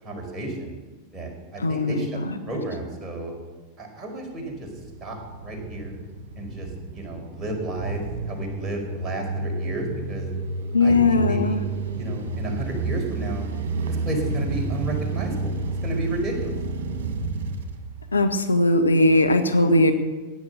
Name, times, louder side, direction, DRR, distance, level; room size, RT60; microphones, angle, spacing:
voice 1, 0.0-0.8 1.1-2.2 2.5-3.3 3.8-4.7 5.0-5.9 6.4-10.3 10.8-11.6 11.9-13.5 13.9-15.5 15.8-16.5, right 1 dB, 15° right, 0 dB, 4.7 m, -32 dB
voice 2, 1.6-2.2 10.7-11.6 18.1-19.9, left 2 dB, 75° left, 6 dB, 1.1 m, -19 dB
sound 1, 4.2-18.5, right 3 dB, 55° right, 1.9 m, -30 dB
17.0 x 10.0 x 6.7 m, 1.3 s
figure-of-eight pair, 90°, 0 cm